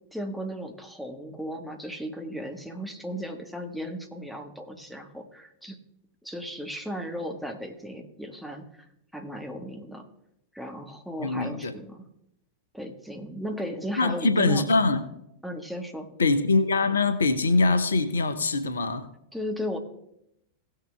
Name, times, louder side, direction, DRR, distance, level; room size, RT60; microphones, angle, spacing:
voice 1, 0.1-5.8 6.2-8.8 9.1-10.1 10.5-12.0 12.7-14.7 15.4-16.1 19.3-19.8, equal, ahead, 3 dB, 1.5 m, -36 dB
voice 2, 11.2-11.7 14.0-15.0 16.2-19.1, left 3 dB, 70° left, 11 dB, 0.8 m, -23 dB
17.5 x 6.7 x 3.4 m, 0.78 s
figure-of-eight pair, 90°, 0 cm